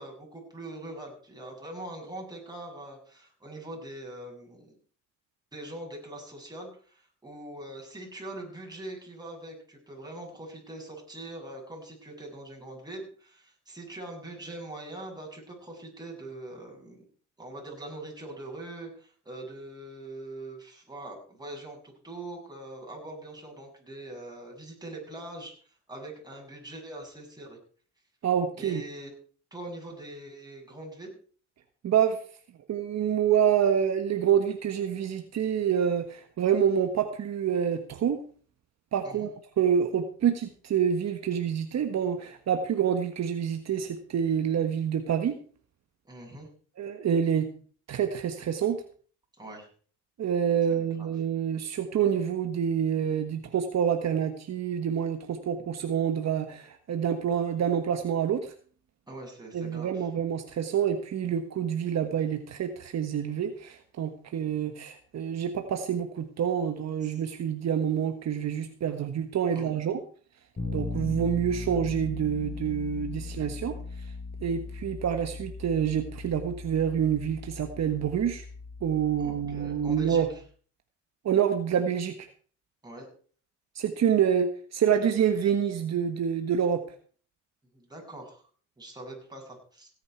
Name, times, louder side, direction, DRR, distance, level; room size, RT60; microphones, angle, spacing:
voice 1, 0.0-4.8 5.5-17.1 17.4-27.6 28.6-29.1 29.5-31.2 39.0-39.3 46.1-46.5 49.4-49.7 50.7-51.1 59.1-60.1 67.0-67.2 69.5-69.7 79.2-80.4 82.8-83.1 87.7-88.4 88.8-89.9, right 1 dB, 15° right, 0 dB, 7.4 m, -42 dB
voice 2, 28.2-28.8 31.8-32.2 32.7-38.2 38.9-45.3 46.8-47.5 47.9-48.8 50.2-58.5 59.5-70.0 70.7-73.8 74.4-78.4 78.8-80.3 81.2-82.3 83.7-86.8, right 8 dB, 60° right, 6 dB, 1.5 m, -27 dB
Bass guitar, 70.6-80.4, left 3 dB, 30° left, 6.5 m, -38 dB
17.0 x 9.8 x 4.6 m, 0.44 s
cardioid pair, 90°, 30 cm